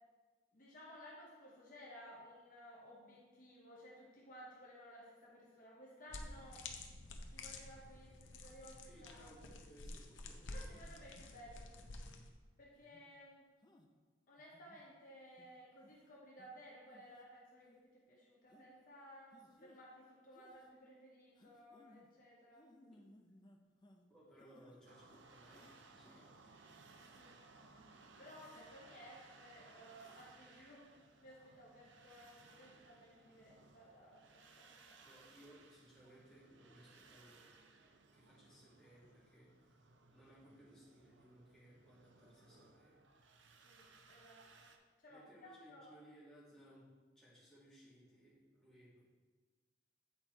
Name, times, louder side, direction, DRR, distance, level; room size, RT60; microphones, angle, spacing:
voice 1, 0.5-6.6 7.3-9.3 10.5-12.1 12.6-13.4 14.3-22.6 27.1-27.4 28.2-30.8 31.2-35.2 43.6-44.7 45.0-45.9, equal, 45° left, -4 dB, 0.9 m, -57 dB
sound 1, 6.1-12.3, left 2 dB, 80° left, 0.7 m, -50 dB
voice 2, 8.9-10.8 22.8-23.0 24.1-26.6 35.0-37.7 38.1-39.8 40.1-43.0 45.1-46.9 47.2-49.1, equal, 5° left, -9 dB, 2.0 m, -63 dB
sound 2, 9.9-10.0 10.7-11.3 11.8-12.2 12.8-13.0 13.6-13.9 14.4-14.8 15.4-15.5 15.8-16.0 16.4-16.5 16.9-17.2 17.6-17.8 18.5-18.7 19.3-19.8 20.3-20.7 21.3-22.1 22.5-24.1 24.4-24.8 25.1-25.7 26.0-26.2, left 1 dB, 20° left, 0.4 m, -65 dB
sound 3, 24.8-44.8, right 3 dB, 70° right, 0.6 m, -63 dB
8.1 x 4.3 x 4.4 m, 1.4 s
head